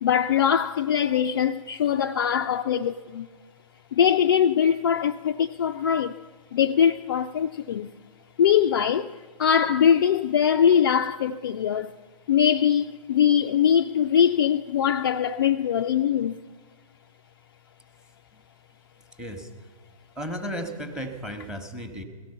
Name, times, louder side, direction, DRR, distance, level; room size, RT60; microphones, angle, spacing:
voice 1, 0.0-3.3 3.9-6.2 6.5-7.9 8.4-11.9 12.3-16.4, left 8 dB, 35° left, 0.4 m, -22 dB
voice 2, 19.0-19.5 20.1-22.0, equal, 5° right, 1.1 m, -35 dB
17.5 x 14.0 x 5.5 m
figure-of-eight pair, 125°, 19 cm